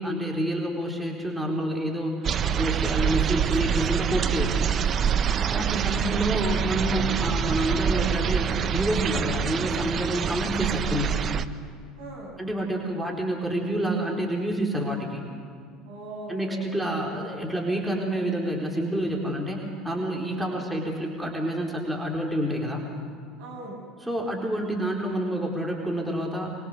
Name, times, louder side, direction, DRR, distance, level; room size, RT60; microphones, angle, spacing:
voice 1, 0.0-4.6 5.5-11.2 12.4-15.3 16.3-22.9 24.0-26.6, right 1 dB, 5° right, -1 dB, 4.1 m, -28 dB
sound 1, 2.2-11.5, right 8 dB, 40° right, 0.9 m, -26 dB
voice 2, 5.4-5.9 12.0-12.4 15.9-16.7 20.3-20.6 23.4-23.8, right 2 dB, 70° right, -2 dB, 7.8 m, -40 dB
25.0 x 23.5 x 6.8 m, 2.1 s
figure-of-eight pair, 70°, 0 cm